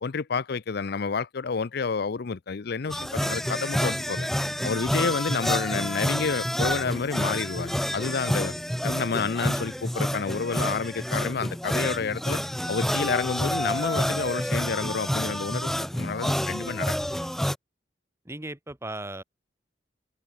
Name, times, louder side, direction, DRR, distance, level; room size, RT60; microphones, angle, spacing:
voice 1, 0.0-4.3 4.6-8.5 8.8-12.4 12.7-17.1, left 5 dB, 60° left, 0.6 m, -29 dB
sound 1, 2.9-17.6, equal, ahead, 0.4 m, -28 dB
voice 2, 18.2-19.2, right 2 dB, 15° right, 1.7 m, -36 dB
head